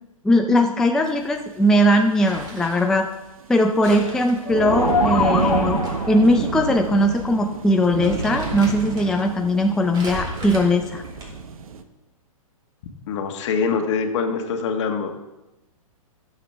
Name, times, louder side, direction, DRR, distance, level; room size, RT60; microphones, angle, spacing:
voice 1, 0.2-3.1 3.5-5.8 6.1-11.0, equal, 5° left, 3 dB, 0.4 m, -19 dB
sound 1, 1.1-1.4 2.2-2.3 2.6-2.7 4.3-11.8, right 5 dB, 75° right, 1.0 m, -28 dB
Crumpling crinkling, 1.9-2.9 3.8-5.9 6.3-6.4 7.2-7.3 7.7-9.2 9.9-11.5, right 1 dB, 25° right, 3.0 m, -36 dB
sound 2, 4.4-6.3, left 5 dB, 85° left, 1.1 m, -24 dB
voice 2, 13.1-15.2, left 5 dB, 55° left, 5 dB, 1.5 m, -24 dB
16.0 x 7.3 x 3.5 m, 1.0 s
hypercardioid pair, 130°, 18 cm